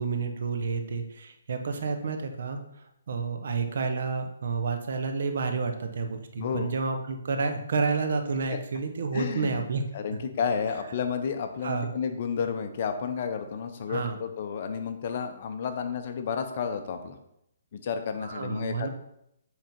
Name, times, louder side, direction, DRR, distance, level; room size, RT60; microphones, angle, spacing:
voice 1, 0.0-2.6 3.1-9.8 10.1-10.2 11.6-12.0 13.9-14.2 18.2-18.9, right 4 dB, 60° right, 5 dB, 1.0 m, -30 dB
voice 2, 6.4-6.8 8.5-8.6 9.1-9.6 9.9-17.2 17.7-18.9, left 6 dB, 40° left, 7 dB, 0.8 m, -31 dB
7.9 x 3.7 x 4.4 m, 0.79 s
hypercardioid pair, 160°, 0 cm